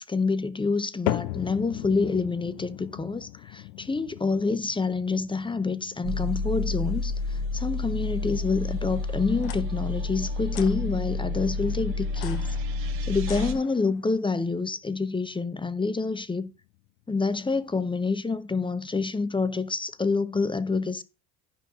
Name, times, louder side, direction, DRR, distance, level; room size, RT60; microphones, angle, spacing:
voice 1, 0.0-12.5 13.0-16.5 17.1-21.0, left 4 dB, 10° left, 0.5 m, -27 dB
sound 1, 1.1-17.4 17.7-18.2 18.8-18.9 19.7-19.8, left 18 dB, 80° left, 0.6 m, -40 dB
sound 2, 6.0-13.5, left 3 dB, 80° right, 1.2 m, -30 dB
sound 3, 9.4-9.6 10.5-10.8 12.1-14.1, left 13 dB, 50° left, 0.8 m, -43 dB
12.0 x 5.2 x 3.6 m
hypercardioid pair, 65°, 48 cm